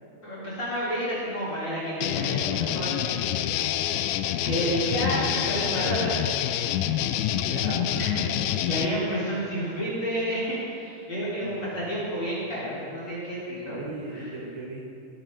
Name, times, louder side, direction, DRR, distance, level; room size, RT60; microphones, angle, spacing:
voice 1, 0.2-3.3 4.2-6.2 8.0-13.8 14.1-14.3, equal, 30° left, -10 dB, 4.4 m, -30 dB
sound 1, 2.0-8.9, left 11 dB, 80° left, 2.2 m, -27 dB
voice 2, 4.9-5.2 7.4-8.0 11.4-11.7 13.7-14.8, right 3 dB, 75° right, -1 dB, 3.3 m, -37 dB
19.0 x 8.9 x 4.1 m, 2.4 s
omnidirectional pair, 4.4 m